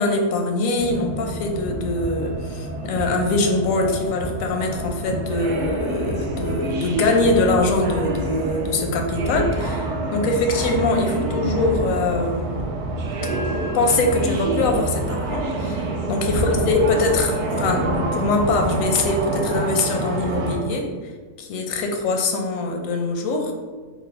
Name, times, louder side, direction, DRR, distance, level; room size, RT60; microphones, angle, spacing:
voice 1, 0.0-12.7 13.7-20.9 21.4-23.5, left 2 dB, 85° left, 3 dB, 1.0 m, -23 dB
sound 1, 0.8-20.6, right 2 dB, 70° right, 0.8 m, -27 dB
4.9 x 2.0 x 3.2 m, 1.4 s
omnidirectional pair, 1.4 m